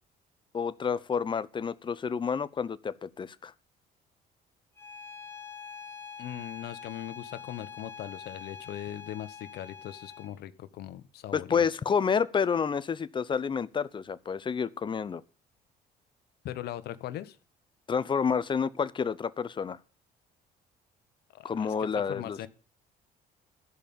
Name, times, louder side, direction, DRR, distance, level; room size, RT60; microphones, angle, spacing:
voice 1, 0.5-3.5 11.3-15.2 17.9-19.8 21.4-22.4, left 6 dB, 30° left, 0.7 m, -29 dB
Bowed string instrument, 4.8-10.4, left 6 dB, 15° left, 1.7 m, -45 dB
voice 2, 6.2-11.7 16.4-17.4 21.3-22.5, left 12 dB, 70° left, 1.1 m, -40 dB
13.0 x 5.4 x 8.6 m
cardioid pair, 110°, 17 cm